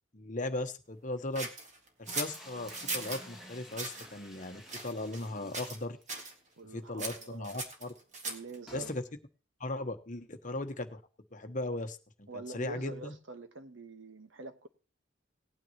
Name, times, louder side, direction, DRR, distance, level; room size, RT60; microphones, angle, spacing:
voice 1, 0.1-1.5 2.0-6.0 6.7-7.9 8.7-9.0 9.6-11.0 11.3-12.3 12.5-13.1, left 2 dB, 40° left, 7 dB, 1.1 m, -37 dB
sound 1, 1.3-3.2 3.7-4.1 4.7-5.3 5.5-5.8 6.1-6.3 7.0-8.6, right 3 dB, 35° right, 1.9 m, -38 dB
sound 2, 2.1-6.3 6.6-6.7 6.9-7.0 8.7-9.0, left 1 dB, ahead, 2.1 m, -52 dB
voice 2, 6.6-7.6 8.2-8.9 12.3-14.7, right 3 dB, 75° right, 8 dB, 1.3 m, -45 dB
18.5 x 9.2 x 3.0 m, 0.34 s
head